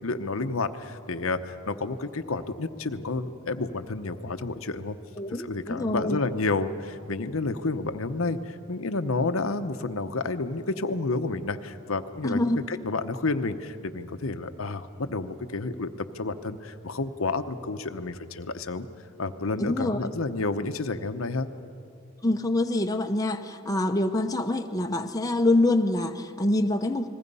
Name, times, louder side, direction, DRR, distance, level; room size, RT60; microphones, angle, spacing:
voice 1, 0.0-5.0 5.4-15.9 16.1-18.9 19.2-21.5, left 3 dB, 80° left, 8 dB, 0.9 m, -30 dB
voice 2, 5.2-6.2 12.2-12.6 19.6-20.1 22.2-27.1, left 1 dB, 15° left, 4 dB, 0.8 m, -25 dB
30.0 x 20.5 x 5.5 m, 2.5 s
head